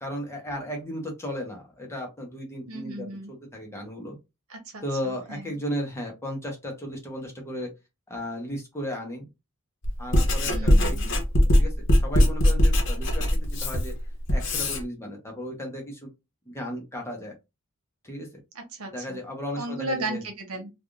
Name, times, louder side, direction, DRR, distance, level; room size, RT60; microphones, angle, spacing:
voice 1, 0.0-4.2 4.8-7.7 8.1-9.3 10.0-11.2 11.6-11.7 12.0-13.2 13.6-13.9 14.3-16.1 16.5-17.3 18.0-18.3 18.9-20.2, equal, 10° left, 0.8 m, -35 dB
voice 2, 2.7-3.3 4.5-5.6 10.5-11.1 18.5-19.2 19.6-20.7, right 2 dB, 80° right, 0.9 m, -35 dB
Writing, 9.8-14.8, left 1 dB, 55° left, 0.9 m, -21 dB
3.4 x 2.4 x 2.4 m
head